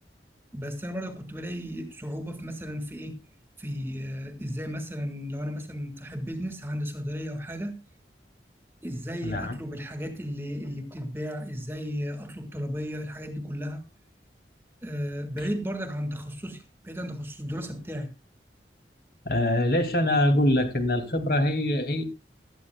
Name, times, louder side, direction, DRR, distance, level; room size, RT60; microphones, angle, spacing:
voice 1, 0.5-3.2 3.6-7.7 8.8-13.8 14.8-18.1, equal, 15° right, 7 dB, 1.8 m, -34 dB
voice 2, 9.2-9.6 19.2-22.0, left 1 dB, 55° left, 6 dB, 2.6 m, -24 dB
17.0 x 12.5 x 2.3 m, 0.26 s
head